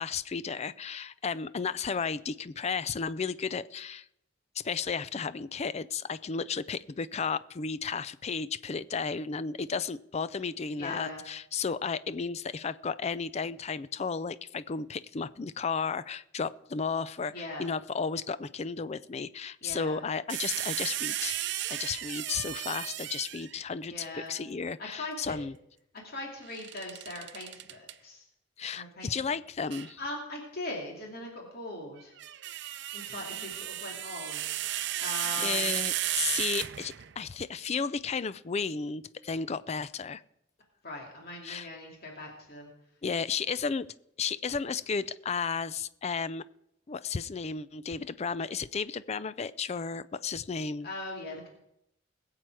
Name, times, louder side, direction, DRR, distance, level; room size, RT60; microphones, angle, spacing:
voice 1, 0.0-4.1 4.6-21.4 21.7-25.5 28.6-30.0 35.4-40.2 41.4-41.7 43.0-43.9 44.2-46.4 46.9-50.9, left 5 dB, 35° left, 16 dB, 0.4 m, -33 dB
voice 2, 10.8-11.2 17.3-17.6 19.6-20.0 23.9-24.3 24.8-25.4 26.0-28.2 28.6-29.1 30.0-32.1 32.9-34.4 35.0-35.7 40.8-42.7 50.8-51.5, left 2 dB, 50° left, -1 dB, 2.7 m, -40 dB
sound 1, 20.3-23.6 26.5-27.9 29.7-29.9 32.0-37.2, right 13 dB, 65° right, 0.6 m, -34 dB
21.0 x 7.7 x 4.7 m, 0.77 s
head